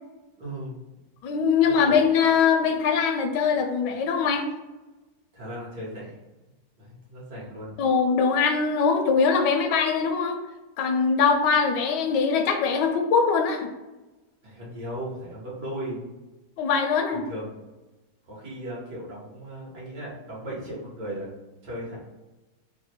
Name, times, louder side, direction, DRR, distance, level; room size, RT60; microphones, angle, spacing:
voice 1, 0.4-0.7 1.6-2.1 5.3-6.2 6.8-7.7 14.4-16.1 17.1-17.5 18.3-21.3 21.6-22.0, right 1 dB, 75° right, -6 dB, 2.1 m, -36 dB
voice 2, 1.2-4.5 7.8-10.4 10.8-13.7 16.6-17.2, left 5 dB, 85° left, 5 dB, 1.2 m, -22 dB
4.3 x 2.1 x 4.3 m, 1.1 s
omnidirectional pair, 1.9 m